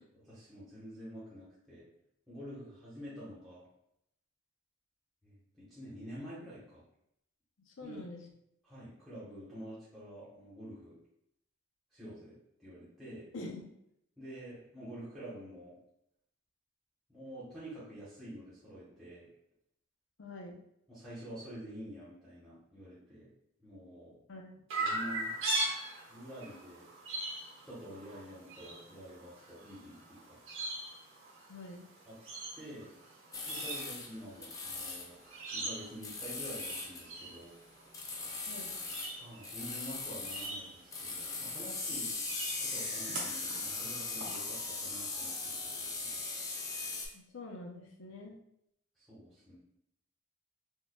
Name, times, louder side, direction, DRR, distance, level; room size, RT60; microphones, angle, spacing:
voice 1, 0.0-1.8 2.3-3.7 5.2-6.8 7.8-8.0 8.6-11.0 11.9-13.3 14.2-15.8 17.1-19.3 20.9-23.3 23.6-24.2 24.8-25.4 26.1-26.8 27.6-30.4 32.1-32.2 32.5-32.9 33.5-35.2 35.5-37.5 39.2-42.1 42.6-46.2 49.0-49.6, equal, ahead, -11 dB, 1.1 m, -48 dB
voice 2, 7.8-8.2 13.3-13.6 20.2-20.6 24.3-24.6 31.5-31.8 38.5-38.8 47.1-48.4, left 2 dB, 75° left, 1 dB, 0.6 m, -45 dB
Chirp tweet, 24.7-44.4, right 2 dB, 75° right, 1.2 m, -42 dB
sound 1, 33.3-34.1 34.4-35.1 36.0-37.0 37.9-39.2 39.4-40.5 40.9-47.1, left 3 dB, 15° left, 0.4 m, -39 dB
4.5 x 2.3 x 2.3 m, 0.77 s
head